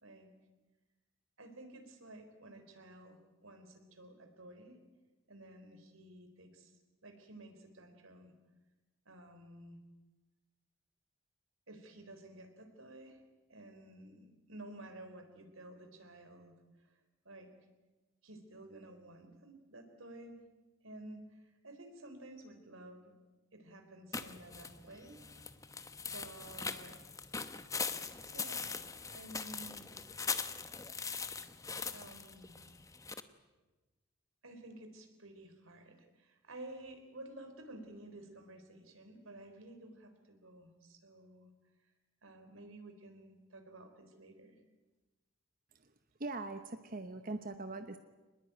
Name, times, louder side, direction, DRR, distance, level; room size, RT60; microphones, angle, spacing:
voice 1, 1.4-4.8 5.3-6.7 7.0-8.3 9.1-9.8 11.7-13.2 13.5-16.6 16.8-16.9 17.2-17.5 18.2-20.4 20.8-23.1 23.5-25.2 26.0-27.0 28.3-28.8 29.1-29.9 31.9-32.5 34.4-41.5 42.2-44.6, right 1 dB, 90° right, 6 dB, 4.1 m, -52 dB
sound 1, 24.1-33.2, left 5 dB, 15° left, 0.9 m, -41 dB
voice 2, 46.2-48.0, right 2 dB, 45° right, 8 dB, 1.0 m, -41 dB
24.0 x 20.5 x 9.1 m, 1.2 s
head